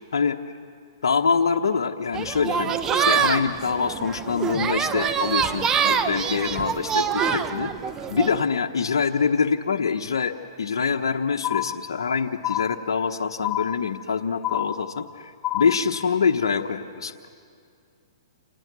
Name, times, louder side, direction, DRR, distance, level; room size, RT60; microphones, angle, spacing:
voice 1, 1.0-7.7 8.1-10.3 10.6-17.3, left 5 dB, 85° left, 3 dB, 1.1 m, -25 dB
sound 1, 2.1-8.4, right 7 dB, 20° right, 1.0 m, -25 dB
sound 2, 11.4-12.1 12.4-13.1 13.4-14.1 14.4-15.1 15.4-16.1, left 14 dB, 20° left, 0.8 m, -29 dB
28.5 x 28.5 x 6.2 m, 2.3 s
hypercardioid pair, 140°, 3 cm